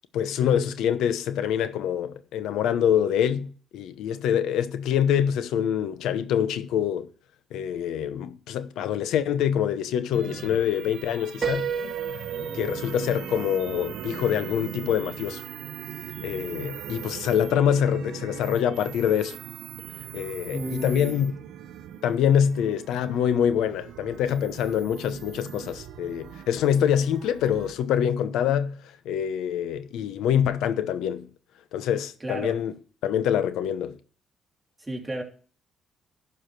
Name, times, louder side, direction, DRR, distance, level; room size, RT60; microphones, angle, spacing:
voice 1, 0.1-7.1 7.5-11.7 12.5-15.4 16.2-19.4 20.1-21.3 22.0-31.3 31.7-32.7 33.0-34.0, left 9 dB, 85° left, 0.9 m, -25 dB
sound 1, 10.1-27.7, right 10 dB, 85° right, 0.7 m, -40 dB
Piano, 11.4-15.2, right 6 dB, 45° right, 1.5 m, -34 dB
voice 2, 20.5-21.2 32.2-32.6 34.8-35.2, right 1 dB, 15° right, 3.0 m, -33 dB
11.5 x 4.9 x 6.1 m
cardioid pair, 90°, 0 cm